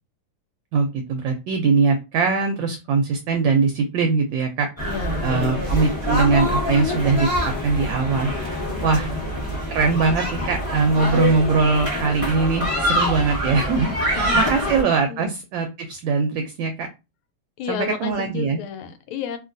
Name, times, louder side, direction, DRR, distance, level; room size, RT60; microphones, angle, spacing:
voice 1, 0.7-4.7 5.2-7.3 7.6-8.3 8.8-9.1 9.7-16.9 17.7-18.6, right 4 dB, 75° right, 4 dB, 1.1 m, -21 dB
voice 2, 4.8-5.7 8.8-9.2 14.1-14.8 15.1-15.3 17.6-19.4, left 6 dB, 80° left, 8 dB, 1.4 m, -31 dB
sound 1, 4.8-14.8, left 1 dB, 15° left, 1.3 m, -25 dB
3.0 x 2.7 x 2.5 m, 0.27 s
omnidirectional pair, 2.4 m